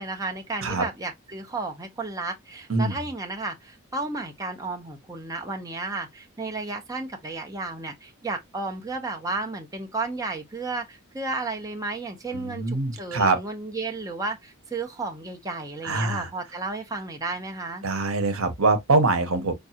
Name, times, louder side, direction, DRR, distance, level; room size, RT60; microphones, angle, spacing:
voice 1, 0.0-17.8, right 3 dB, 15° right, 0.6 m, -33 dB
voice 2, 2.7-3.0 12.3-13.4 15.8-16.3 17.8-19.5, right 3 dB, 75° right, 1.0 m, -24 dB
5.2 x 2.3 x 2.7 m
head